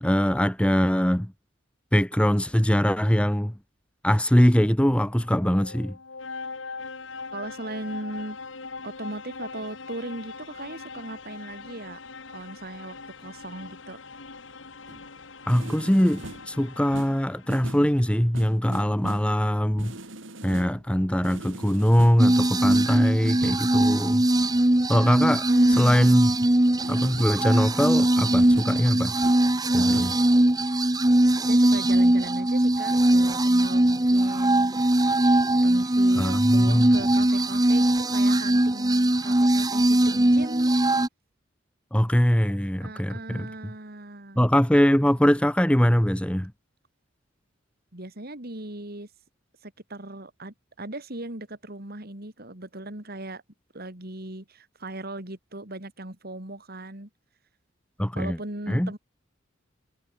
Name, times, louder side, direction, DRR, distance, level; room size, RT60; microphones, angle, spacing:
voice 1, 0.0-1.3 1.9-3.5 4.0-6.0 15.5-20.0 20.4-24.3 24.9-25.4 25.8-26.3 26.9-29.1 29.7-30.2 36.1-36.9 41.9-43.7 44.4-46.5 58.0-58.4 58.7-58.9, equal, 5° left, 1.3 m, -22 dB
sound 1, 5.0-17.8, left 4 dB, 75° left, 2.1 m, -41 dB
voice 2, 7.3-8.4 8.8-12.0 12.3-14.0 25.2-26.3 31.1-34.8 35.6-40.7 42.8-44.4 47.9-49.1 49.6-53.4 53.7-57.1 58.2-59.0, right 1 dB, 55° right, 3.6 m, -38 dB
sound 2, 14.9-15.1 15.5-16.6 16.9-18.0 18.3-19.4 19.8-20.9 21.2-22.3 22.7-23.8 25.7-26.1 26.8-27.5 28.2-28.9 29.2-29.6 29.9-30.3, right 1 dB, 85° right, 3.7 m, -41 dB
sound 3, 22.2-41.1, right 1 dB, 20° right, 1.1 m, -21 dB
head